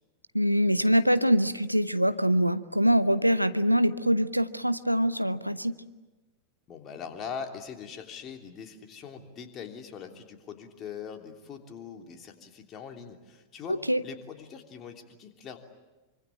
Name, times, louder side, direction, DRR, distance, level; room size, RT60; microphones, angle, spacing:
voice 1, 0.3-5.7 13.7-14.0, equal, 90° right, 13 dB, 0.8 m, -24 dB
voice 2, 6.7-15.6, left 6 dB, 30° left, 5 dB, 3.2 m, -42 dB
26.0 x 25.0 x 8.8 m, 1.2 s
figure-of-eight pair, 90°, 0 cm